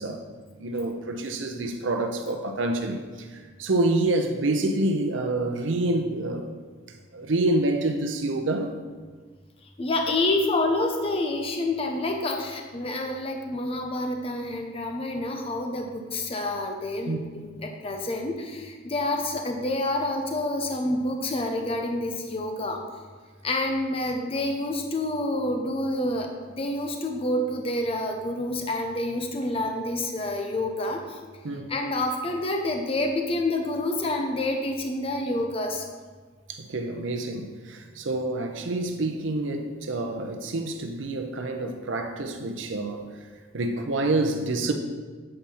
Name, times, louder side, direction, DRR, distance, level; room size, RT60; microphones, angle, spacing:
voice 1, 0.0-6.5 7.1-8.8 17.1-17.2 31.4-31.7 36.5-43.3 43.5-44.7, right 2 dB, 70° right, 5 dB, 0.6 m, -27 dB
voice 2, 9.8-22.8 23.4-26.3 26.6-31.0 31.7-35.8, left 2 dB, 30° left, 3 dB, 0.6 m, -28 dB
7.8 x 4.3 x 5.5 m, 1.5 s
head